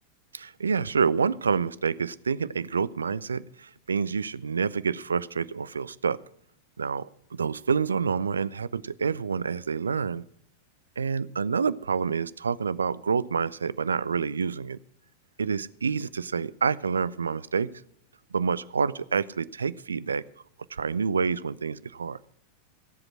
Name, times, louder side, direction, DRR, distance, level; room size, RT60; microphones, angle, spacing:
voice 1, 0.3-6.2 6.8-10.2 11.0-14.8 15.4-17.7 18.3-20.2 20.7-22.2, right 5 dB, 75° right, 19 dB, 0.4 m, -28 dB
17.5 x 7.8 x 6.1 m, 0.68 s
figure-of-eight pair, 90°, 0 cm